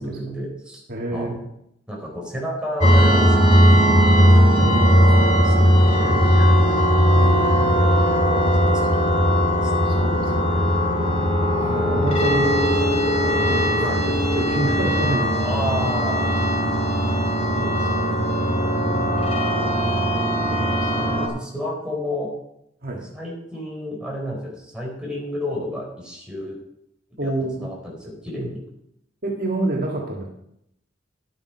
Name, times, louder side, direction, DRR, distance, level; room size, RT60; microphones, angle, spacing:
voice 1, 0.0-0.8 1.1-1.4 1.9-4.2 5.0-6.6 7.6-7.8 8.3-9.0 9.6-9.7 10.9-11.1 13.8-14.3 15.4-16.3 17.5-18.3 18.9-19.3 20.8-22.3 23.1-26.6 27.2-27.3 27.6-28.6, equal, 5° right, -2 dB, 4.4 m, -32 dB
voice 2, 0.9-1.5 4.6-5.5 7.1-7.7 9.6-10.5 11.6-12.8 13.2-15.6 16.6-16.9 18.8-19.3 22.8-23.0 27.2-27.7 29.2-30.3, right 2 dB, 55° right, -1 dB, 1.9 m, -28 dB
sound 1, 2.8-21.3, equal, 35° left, 2.4 m, -18 dB
11.5 x 8.8 x 5.6 m, 0.78 s
head